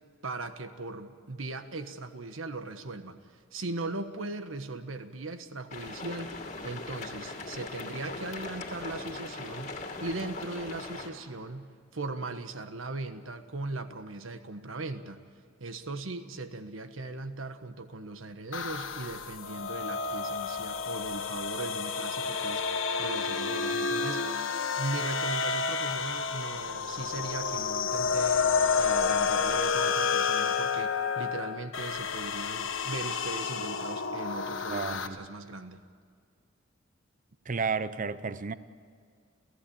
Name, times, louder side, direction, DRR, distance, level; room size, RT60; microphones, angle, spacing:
voice 1, 0.2-15.2 15.6-24.4 24.8-35.8, right 2 dB, 80° right, 9 dB, 1.4 m, -39 dB
sound 1, 5.7-11.1, left 3 dB, 40° left, 2.6 m, -40 dB
sound 2, 18.5-35.1, left 5 dB, 75° left, 1.4 m, -30 dB
voice 2, 34.7-35.2 37.5-38.5, right 5 dB, 40° right, 14 dB, 0.7 m, -32 dB
30.0 x 15.0 x 8.8 m, 2.1 s
head